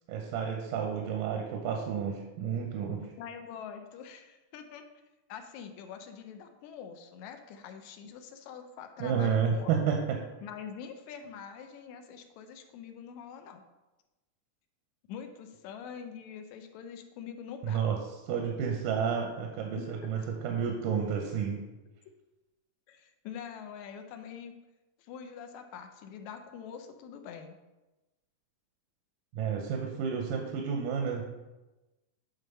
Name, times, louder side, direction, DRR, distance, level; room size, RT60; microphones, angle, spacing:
voice 1, 0.1-3.1 9.0-10.2 17.6-18.0 18.3-21.6 29.3-31.2, right 7 dB, 90° right, 2 dB, 2.3 m, -31 dB
voice 2, 3.2-4.8 5.3-10.0 10.4-13.6 15.1-17.8 22.9-24.6 25.1-27.6, left 7 dB, 75° left, 7 dB, 1.8 m, -45 dB
9.1 x 3.6 x 5.4 m, 1.1 s
omnidirectional pair, 3.7 m